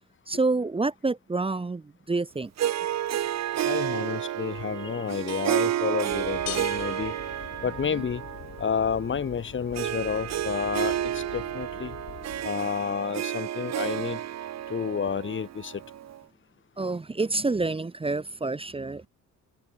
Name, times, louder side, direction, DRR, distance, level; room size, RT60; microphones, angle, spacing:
voice 1, 0.3-2.5 7.9-8.0 16.8-19.1, right 3 dB, 20° right, 1.1 m, -28 dB
Harp, 2.6-16.2, right 11 dB, 60° right, 1.1 m, -31 dB
voice 2, 3.6-7.1 7.6-8.2 8.6-11.9 12.4-14.2 14.7-15.8, left 7 dB, 40° left, 1.6 m, -30 dB
sound 1, 6.1-12.5, left 10 dB, 65° left, 4.5 m, -45 dB
sound 2, 6.5-8.3, left 16 dB, 85° left, 1.5 m, -40 dB
cardioid pair, 90°, 30 cm